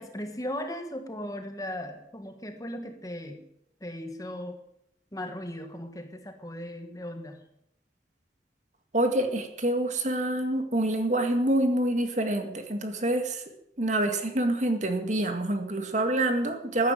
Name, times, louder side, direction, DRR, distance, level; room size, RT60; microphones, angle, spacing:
voice 1, 0.0-3.5 3.8-4.6 5.1-7.4, left 1 dB, 20° left, 6 dB, 1.5 m, -37 dB
voice 2, 8.9-13.4 13.8-16.9, right 1 dB, 40° right, 6 dB, 2.0 m, -26 dB
14.5 x 10.5 x 9.2 m, 0.78 s
head